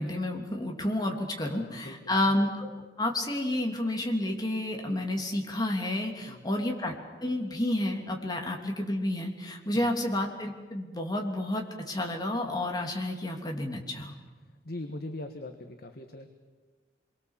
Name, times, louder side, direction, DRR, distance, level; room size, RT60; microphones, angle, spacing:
voice 1, 0.0-2.7 3.0-6.9 7.2-14.2, left 1 dB, 25° left, 1 dB, 3.1 m, -30 dB
voice 2, 1.4-2.2 6.2-6.4 9.7-9.9 14.6-16.3, left 1 dB, 60° left, 6 dB, 1.5 m, -41 dB
27.0 x 23.0 x 7.5 m, 1.4 s
head